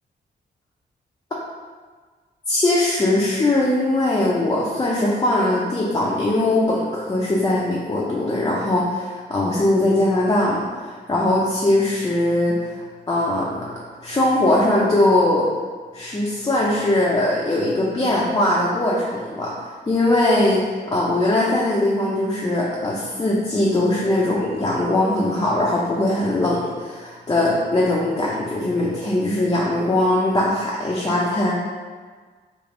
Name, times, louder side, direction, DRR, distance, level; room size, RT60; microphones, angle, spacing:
voice 1, 2.5-12.7 13.1-13.6 14.0-15.4 15.9-19.5 19.9-31.5, left 1 dB, 25° left, -5 dB, 0.6 m, -20 dB
3.4 x 2.5 x 3.7 m, 1.5 s
cardioid pair, 100°, 18 cm